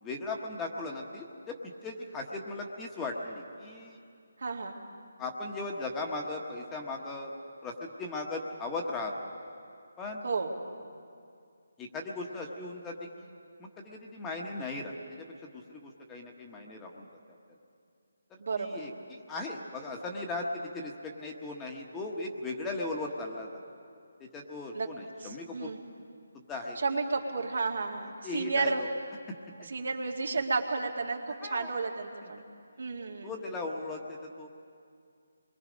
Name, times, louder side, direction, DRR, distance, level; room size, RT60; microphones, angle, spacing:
voice 1, 0.0-4.0 5.2-7.3 7.6-9.1 10.0-10.2 11.8-13.3 13.6-17.1 18.6-23.6 24.2-25.7 26.3-26.8 28.2-28.9 31.4-31.7 33.2-34.5, left 2 dB, 10° left, 0 dB, 1.3 m, -38 dB
voice 2, 4.4-4.7 10.2-10.5 18.4-18.8 24.7-24.9 25.2-25.8 26.8-28.8 29.7-32.4 32.8-33.3, right 4 dB, 70° right, 2 dB, 2.2 m, -32 dB
26.5 x 23.0 x 5.2 m, 2.3 s
hypercardioid pair, 165°, 0 cm